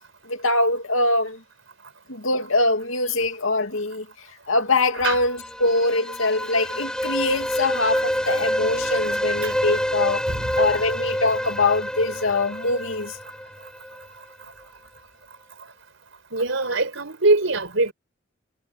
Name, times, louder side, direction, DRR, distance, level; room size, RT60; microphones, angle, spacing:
voice 1, 0.3-1.4 2.1-4.0 4.5-10.2 10.6-13.2, left 2 dB, 80° left, 2.6 m, -23 dB
sound 1, 5.2-14.1, equal, 5° left, 5.9 m, -27 dB
voice 2, 10.3-10.6 16.3-17.9, right 2 dB, 70° right, 5.3 m, -22 dB
head